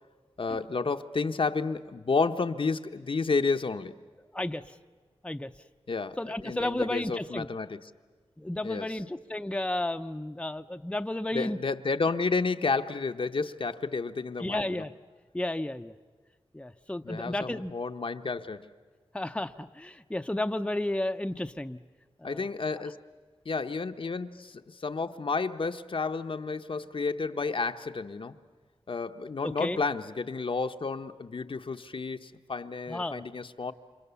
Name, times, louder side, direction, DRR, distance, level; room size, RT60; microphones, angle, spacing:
voice 1, 0.4-3.9 5.9-6.2 6.4-7.9 8.6-8.9 11.3-14.8 17.0-18.7 22.2-23.0 23.4-28.4 28.9-33.7, left 4 dB, 60° left, 7 dB, 0.9 m, -31 dB
voice 2, 6.2-7.5 8.4-11.6 14.4-14.9 15.3-15.9 16.5-17.7 19.1-21.8 22.2-22.5 29.4-29.8 32.9-33.2, left 1 dB, 10° left, 7 dB, 0.7 m, -32 dB
29.5 x 26.5 x 7.0 m, 1.5 s
wide cardioid pair, 60°, 10 cm